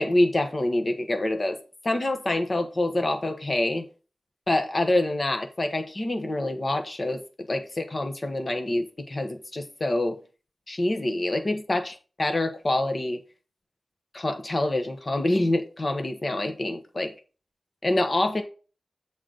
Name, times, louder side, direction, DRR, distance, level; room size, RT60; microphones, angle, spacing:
voice 1, 0.0-1.6 1.8-3.8 4.5-7.2 7.5-10.2 10.7-11.9 12.2-13.2 14.1-17.1 17.8-18.4, left 1 dB, 40° left, 6 dB, 1.2 m, -26 dB
7.3 x 3.9 x 6.3 m, 0.37 s
wide cardioid pair, 100°, 0 cm